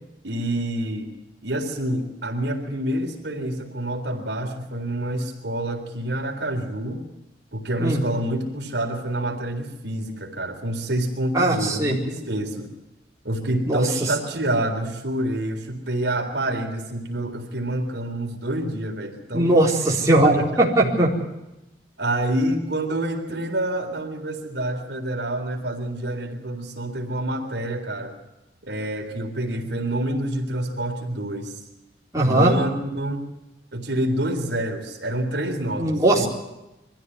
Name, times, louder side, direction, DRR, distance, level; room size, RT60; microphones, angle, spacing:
voice 1, 0.2-1.1 1.4-7.0 7.5-12.7 13.2-19.6 20.2-20.9 22.0-28.2 28.6-31.6 32.2-33.3 33.7-36.3, right 1 dB, 70° right, 2 dB, 3.8 m, -27 dB
voice 2, 11.3-11.9 13.6-14.1 19.3-21.1 32.1-32.5 35.8-36.3, right 1 dB, 20° right, -3 dB, 4.1 m, -19 dB
23.5 x 15.0 x 9.4 m, 0.96 s
head